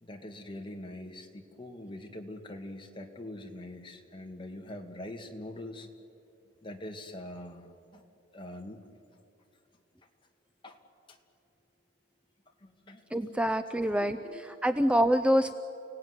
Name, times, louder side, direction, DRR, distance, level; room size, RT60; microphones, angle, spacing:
voice 1, 0.0-5.9 6.6-8.0 8.3-8.8 10.6-10.8 11.1-11.2 12.6-13.1 14.0-14.4, left 1 dB, 30° left, 3 dB, 2.1 m, -43 dB
voice 2, 13.1-15.5, equal, 5° right, 9 dB, 0.6 m, -26 dB
30.0 x 18.0 x 9.7 m, 2.5 s
head